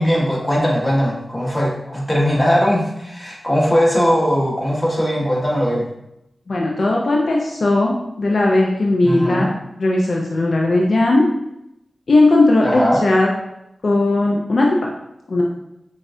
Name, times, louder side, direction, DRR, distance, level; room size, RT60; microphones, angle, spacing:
voice 1, 0.0-5.8 9.0-9.5 12.6-13.0, equal, 20° left, -4 dB, 1.4 m, -19 dB
voice 2, 6.5-9.5 9.8-11.3 12.1-13.3 13.8-14.8 15.3-15.4, left 2 dB, 70° left, -2 dB, 0.5 m, -17 dB
6.0 x 2.4 x 2.6 m, 0.84 s
cardioid pair, 45°, 0 cm